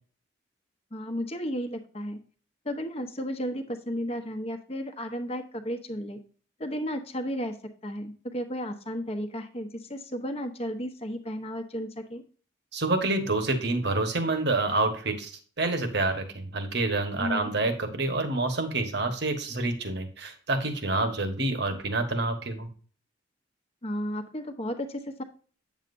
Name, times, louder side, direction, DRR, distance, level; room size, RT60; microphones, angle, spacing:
voice 1, 0.9-2.2 2.6-6.2 6.6-7.6 7.8-12.2 17.2-17.5 23.8-25.2, equal, 30° left, 6 dB, 1.0 m, -33 dB
voice 2, 12.7-15.3 15.6-22.7, right 2 dB, 60° right, 7 dB, 1.3 m, -27 dB
8.9 x 7.3 x 2.6 m, 0.42 s
head